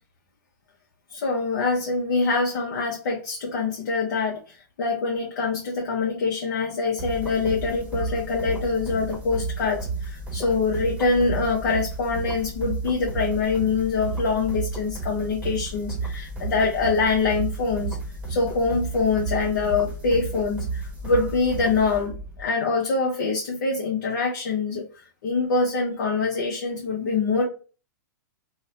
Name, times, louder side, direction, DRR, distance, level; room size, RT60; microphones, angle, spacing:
voice 1, 1.1-4.4 4.8-18.0 18.3-24.8 25.2-27.4, left 4 dB, 65° left, -1 dB, 0.7 m, -24 dB
sound 1, 7.0-22.4, right 3 dB, 10° right, 0.9 m, -33 dB
2.7 x 2.1 x 2.7 m, 0.36 s
hypercardioid pair, 115°, 11 cm